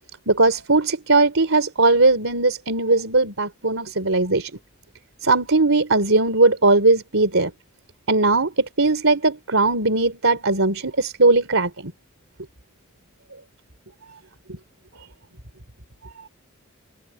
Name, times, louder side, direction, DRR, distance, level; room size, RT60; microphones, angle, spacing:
voice 1, 0.3-4.5 5.2-7.5 8.1-11.9, right 3 dB, 70° right, 3.9 m, -19 dB
open air
head